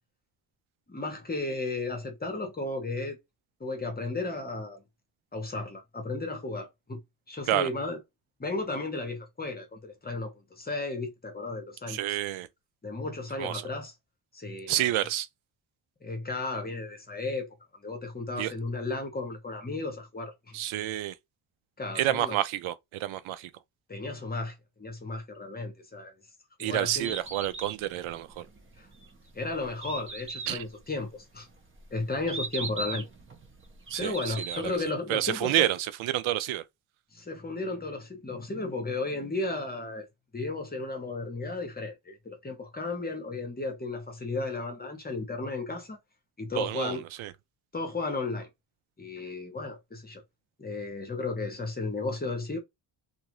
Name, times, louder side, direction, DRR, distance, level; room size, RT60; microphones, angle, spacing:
voice 1, 0.9-3.2 3.6-4.8 5.3-7.0 7.3-8.0 8.4-12.0 12.8-13.9 14.3-14.9 16.0-17.5 17.8-20.6 21.8-22.4 23.9-26.1 26.6-27.2 28.8-28.9 29.3-31.5 31.9-33.0 34.0-35.7 37.1-40.1 40.3-46.0 46.4-47.0 47.7-48.5 49.0-50.2 50.6-52.6, left 3 dB, 20° left, 0.8 m, -34 dB
voice 2, 11.9-12.5 13.4-13.7 14.7-15.3 18.4-18.5 20.5-21.2 21.9-23.5 26.6-28.5 30.5-30.6 33.9-34.8 35.1-36.7 46.5-47.3, right 13 dB, 90° right, 0.6 m, -29 dB
Bird, 26.9-34.9, right 4 dB, 25° right, 0.6 m, -40 dB
2.6 x 2.3 x 2.9 m
cardioid pair, 125°, 46 cm